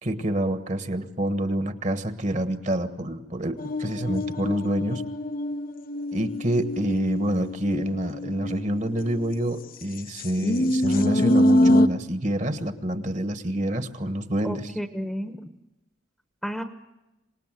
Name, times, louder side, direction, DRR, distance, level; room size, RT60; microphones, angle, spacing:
voice 1, 0.0-5.0 6.1-14.7, right 1 dB, 35° right, 9 dB, 1.4 m, -27 dB
sound 1, 3.6-9.3 10.0-11.9, left 1 dB, 45° left, 0.8 m, -24 dB
voice 2, 14.4-15.5 16.4-16.6, equal, ahead, 8 dB, 1.1 m, -31 dB
26.5 x 19.5 x 9.1 m, 0.99 s
head